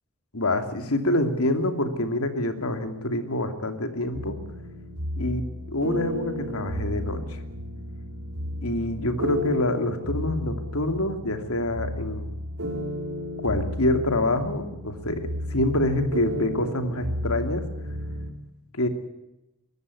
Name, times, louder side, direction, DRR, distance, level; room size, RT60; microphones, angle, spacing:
voice 1, 0.3-4.4 5.2-5.4 5.7-7.4 8.6-12.3 13.4-17.7 18.7-18.9, left 1 dB, 80° left, 7 dB, 2.7 m, -26 dB
sound 1, 4.1-18.3, equal, 85° right, 3.7 m, -33 dB
23.5 x 14.0 x 9.7 m, 0.92 s
head